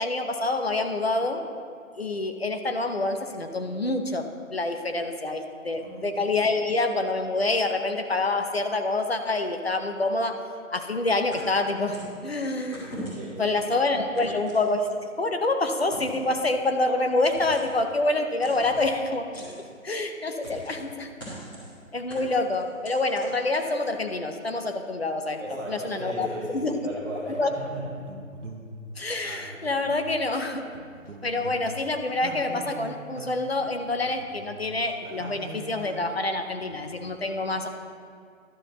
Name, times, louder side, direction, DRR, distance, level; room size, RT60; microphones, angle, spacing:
voice 1, 0.0-1.4 2.0-10.4 10.7-13.0 13.4-14.9 15.2-21.1 21.9-25.4 25.7-26.3 26.5-26.7 27.3-27.5 29.0-30.6 31.2-37.7, left 2 dB, 45° left, 6 dB, 0.8 m, -27 dB
voice 2, 5.7-6.1 13.1-13.6 14.1-14.3 25.4-27.9, right 1 dB, 15° right, -12 dB, 2.7 m, -36 dB
sound 1, 11.3-12.2 12.7-13.4 14.1-15.1 15.8-16.3 17.2-17.8 18.4-18.9 19.3-19.6 20.4-20.8 21.2-21.7 22.1-24.0, equal, 15° left, 2.1 m, -41 dB
sound 2, 25.6-25.9 26.3-27.1 27.6-30.3 30.6-36.2 36.6-37.1, right 2 dB, 60° right, 1.2 m, -43 dB
11.5 x 11.0 x 3.0 m, 2.2 s
figure-of-eight pair, 165°, 42 cm